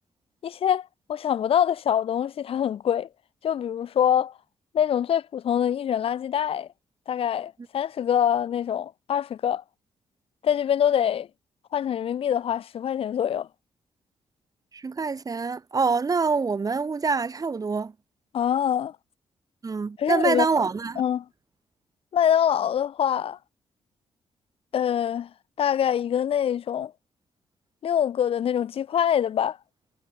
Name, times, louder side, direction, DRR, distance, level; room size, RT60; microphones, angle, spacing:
voice 1, 0.4-3.1 3.4-4.3 4.7-6.7 7.1-9.6 10.4-11.3 11.7-13.5 18.3-18.9 20.0-20.5 21.0-21.2 22.1-23.4 24.7-25.3 25.6-26.9 27.8-29.6, left 9 dB, 65° left, 1.0 m, -24 dB
voice 2, 14.7-17.9 19.6-21.0, right 4 dB, 35° right, 6.9 m, -25 dB
cardioid pair, 100°, 10 cm